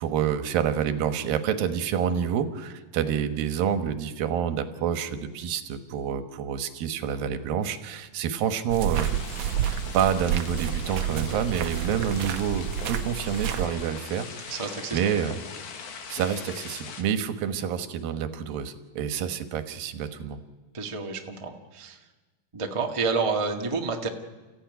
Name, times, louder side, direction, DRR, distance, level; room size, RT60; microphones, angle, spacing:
voice 1, 0.0-9.1 9.9-14.6 14.9-15.4 16.1-20.4, right 8 dB, 85° right, 9 dB, 3.1 m, -28 dB
sound 1, 8.7-13.7, right 10 dB, 70° right, 1.9 m, -29 dB
sound 2, 8.9-17.0, left 6 dB, 65° left, 3.0 m, -41 dB
voice 2, 14.5-15.0 20.7-22.0 22.5-24.1, right 4 dB, 35° right, 2 dB, 0.5 m, -29 dB
30.0 x 15.0 x 9.4 m, 1.3 s
omnidirectional pair, 4.0 m